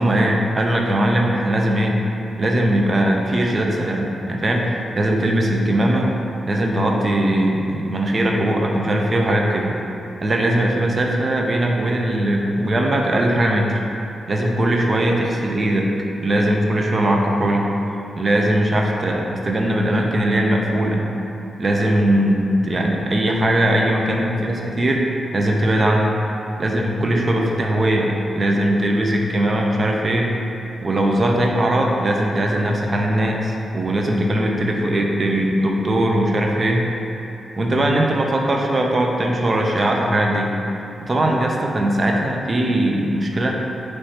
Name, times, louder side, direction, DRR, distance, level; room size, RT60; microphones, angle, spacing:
voice 1, 0.0-2.0 2.4-6.1 6.5-9.7 10.2-13.8 14.3-15.9 16.2-17.7 18.2-21.1 21.6-25.0 25.3-26.1 26.6-30.3 30.8-36.9 37.6-40.5 41.0-43.6, right 1 dB, 40° right, 0 dB, 0.5 m, -20 dB
4.7 x 3.1 x 2.8 m, 2.8 s
cardioid pair, 70°, 0 cm